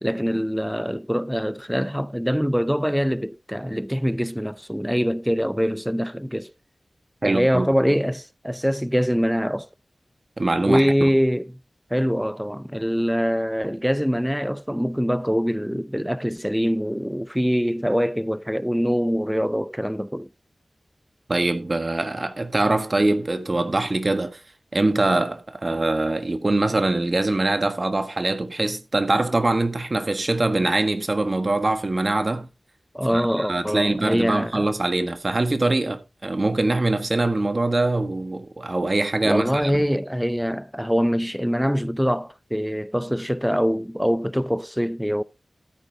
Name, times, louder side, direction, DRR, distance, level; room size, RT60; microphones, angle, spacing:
voice 1, 0.0-6.5 7.2-9.7 10.6-11.5 11.9-20.3 32.9-34.7 39.2-45.2, equal, ahead, 0.5 m, -24 dB
voice 2, 7.2-7.7 10.4-11.1 21.3-24.4 24.7-32.5 33.1-39.7, right 2 dB, 45° right, 1.4 m, -23 dB
14.0 x 8.6 x 2.8 m
wide cardioid pair, 55°, 0 cm